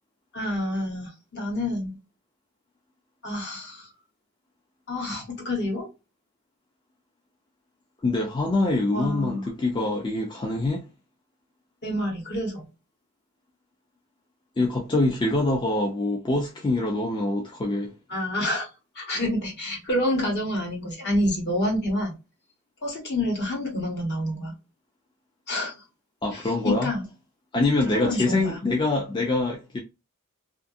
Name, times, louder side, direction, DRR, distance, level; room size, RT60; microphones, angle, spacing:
voice 1, 0.3-2.0 3.2-3.9 4.9-5.9 8.9-9.5 11.8-12.7 18.1-18.7 18.9-22.1 22.8-24.5 25.5-25.8 26.3-27.0 27.8-28.6, left 1 dB, 50° left, 1.2 m, -28 dB
voice 2, 8.0-10.8 14.6-17.9 26.2-26.9 27.5-29.8, left 2 dB, 20° left, 0.3 m, -24 dB
2.7 x 2.4 x 2.5 m
head